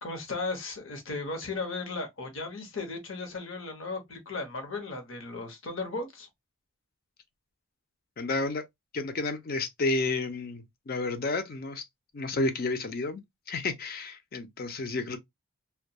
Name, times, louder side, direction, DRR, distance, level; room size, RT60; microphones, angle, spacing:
voice 1, 0.0-6.3, left 3 dB, 65° left, 0.8 m, -36 dB
voice 2, 8.2-8.6 8.9-11.8 12.1-13.2 13.5-15.2, left 3 dB, 45° left, 0.4 m, -31 dB
2.2 x 2.2 x 2.7 m
head